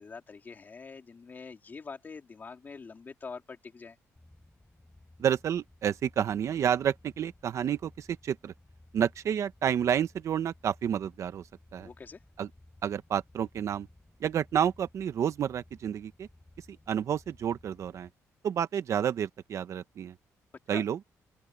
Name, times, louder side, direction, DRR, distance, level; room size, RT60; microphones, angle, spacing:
voice 1, 0.0-4.0 11.8-12.2 20.7-20.8, left 5 dB, 30° left, 3.3 m, -45 dB
sound 1, 4.2-18.1, left 2 dB, 10° left, 7.4 m, -58 dB
voice 2, 5.2-8.5 8.9-11.5 11.7-11.9 12.4-12.5 12.8-13.9 14.2-16.3 16.7-18.1 18.4-20.2 20.7-21.0, right 9 dB, 55° right, 1.1 m, -30 dB
open air
cardioid pair, 125°, 6 cm